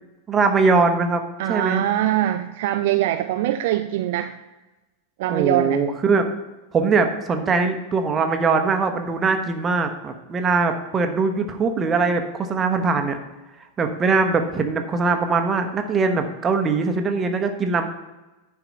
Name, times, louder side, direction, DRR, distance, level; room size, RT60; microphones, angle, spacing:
voice 1, 0.3-1.2 1.5-1.8 5.3-6.3 6.7-13.2 13.8-17.9, right 4 dB, 20° right, 6 dB, 1.0 m, -21 dB
voice 2, 1.4-4.3 5.2-5.8, right 13 dB, 50° right, 9 dB, 0.4 m, -23 dB
10.0 x 4.8 x 5.4 m, 1.1 s
figure-of-eight pair, 90°, 0 cm